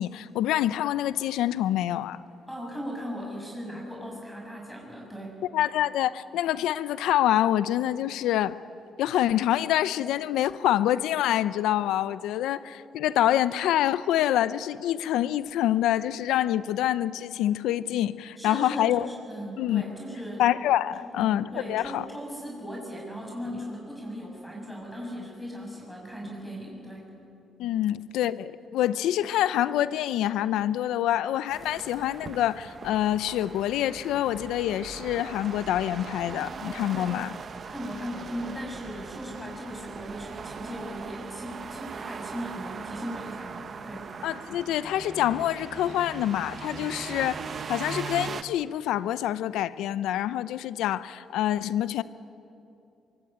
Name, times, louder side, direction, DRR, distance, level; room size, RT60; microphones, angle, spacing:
voice 1, 0.0-2.2 5.5-8.5 9.0-19.1 19.6-19.8 20.4-22.0 27.6-37.3 44.2-47.4 47.7-52.0, left 12 dB, 90° left, 15 dB, 0.7 m, -26 dB
voice 2, 2.5-5.4 18.4-20.4 21.0-27.1 36.9-37.2 37.7-44.1, equal, 5° left, -2 dB, 6.9 m, -38 dB
sound 1, 31.5-48.4, right 6 dB, 50° right, 1.2 m, -40 dB
23.5 x 23.5 x 8.9 m, 2.7 s
cardioid pair, 90°, 0 cm